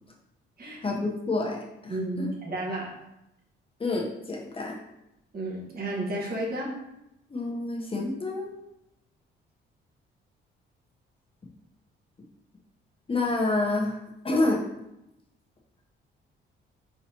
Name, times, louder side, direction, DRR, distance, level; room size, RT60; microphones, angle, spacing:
voice 1, 0.8-2.3 3.8-4.8 7.3-8.5 13.1-14.0 14.2-14.6, left 2 dB, 30° left, -1 dB, 0.9 m, -28 dB
voice 2, 1.9-2.9 5.3-6.7, right 1 dB, 50° right, -3 dB, 1.5 m, -32 dB
4.4 x 3.9 x 2.9 m, 0.87 s
cardioid pair, 90°, 20 cm